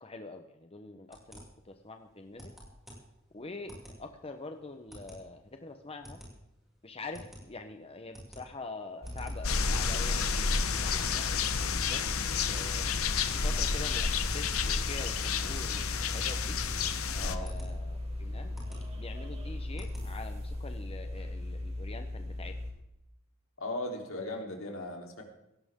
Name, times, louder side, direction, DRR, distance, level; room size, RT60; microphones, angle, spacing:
voice 1, 0.0-2.5 3.3-6.2 6.8-11.3 11.9-12.9 13.3-16.6 17.1-18.5 19.0-22.5, left 3 dB, 30° left, 6 dB, 1.0 m, -45 dB
sound 1, 1.1-20.5, equal, ahead, 6.5 m, -50 dB
sound 2, 9.0-22.7, left 1 dB, 30° right, 3.5 m, -38 dB
sound 3, 9.4-17.4, left 5 dB, 90° left, 1.2 m, -31 dB
voice 2, 23.6-25.2, left 1 dB, 70° left, 1 dB, 3.7 m, -37 dB
18.0 x 16.5 x 3.7 m, 0.87 s
head